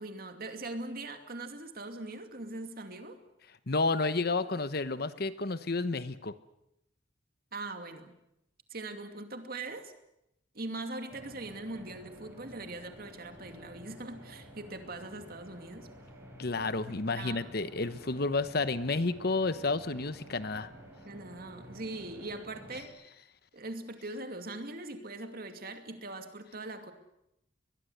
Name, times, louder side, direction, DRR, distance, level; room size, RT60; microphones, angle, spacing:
voice 1, 0.0-3.2 7.5-8.2 8.7-9.9 10.5-15.9 16.9-17.5 21.0-23.0 23.5-26.9, right 2 dB, 50° right, 6 dB, 2.6 m, -41 dB
voice 2, 3.7-6.3 16.4-20.7, left 3 dB, 55° left, 13 dB, 1.0 m, -31 dB
sound 1, 11.1-22.9, equal, 15° right, 5.4 m, -51 dB
22.0 x 22.0 x 8.0 m, 0.82 s
head